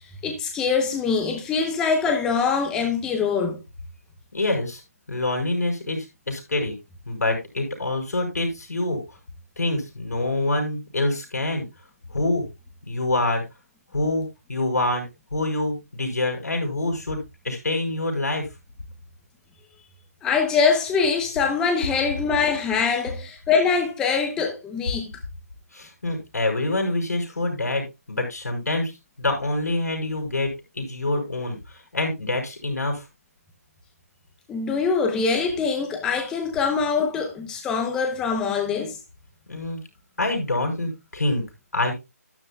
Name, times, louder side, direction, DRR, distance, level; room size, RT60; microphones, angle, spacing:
voice 1, 0.2-3.6 20.2-25.1 34.5-39.0, left 5 dB, 10° left, 0.8 m, -23 dB
voice 2, 4.3-4.8 5.1-6.8 7.1-9.2 9.6-11.7 12.1-12.5 12.9-13.4 13.9-15.0 15.3-17.2 17.4-18.4 25.7-28.9 29.2-33.0 39.5-39.8 40.2-41.4 41.7-41.9, left 2 dB, 75° left, 5.8 m, -26 dB
12.0 x 10.5 x 2.3 m
figure-of-eight pair, 160°, 9 cm